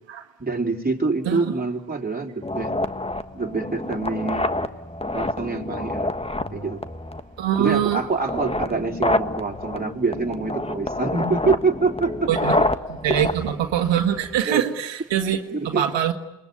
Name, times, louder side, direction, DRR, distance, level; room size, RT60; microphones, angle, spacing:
voice 1, 0.4-2.7 3.3-4.5 5.1-6.1 6.5-6.9 7.6-12.3 13.1-13.3 14.5-14.7 15.5-16.1, right 4 dB, 20° right, 1 dB, 4.1 m, -26 dB
sound 1, 2.4-14.4, left 1 dB, 15° left, 1.5 m, -28 dB
voice 2, 7.4-8.0 12.3-12.6 12.9-15.4 15.6-16.1, right 10 dB, 80° right, 3 dB, 1.9 m, -23 dB
27.5 x 21.5 x 9.6 m, 0.96 s
supercardioid pair, 45°, 44 cm